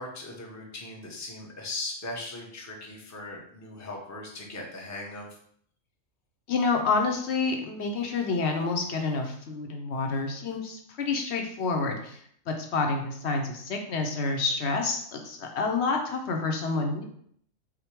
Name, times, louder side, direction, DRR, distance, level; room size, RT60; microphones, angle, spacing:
voice 1, 0.0-5.3, left 2 dB, 15° left, -1 dB, 0.6 m, -39 dB
voice 2, 6.5-17.0, left 4 dB, 65° left, 3 dB, 0.9 m, -28 dB
5.0 x 2.1 x 4.3 m, 0.65 s
omnidirectional pair, 1.3 m